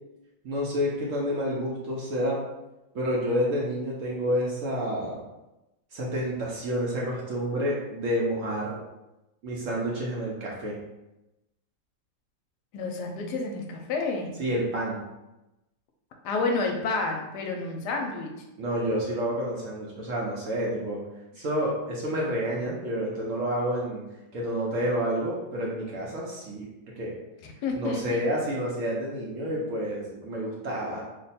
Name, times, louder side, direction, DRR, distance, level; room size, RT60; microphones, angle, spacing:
voice 1, 0.4-2.4 2.9-5.2 5.9-8.8 9.4-10.7 14.4-15.0 18.6-21.0 21.3-24.0 24.3-26.7 27.0-27.1 27.7-31.0, equal, 60° right, -4 dB, 0.9 m, -29 dB
voice 2, 12.7-14.3 16.2-18.3 27.6-28.2, left 3 dB, 80° left, 2 dB, 1.2 m, -29 dB
3.1 x 2.2 x 4.1 m, 0.97 s
omnidirectional pair, 1.8 m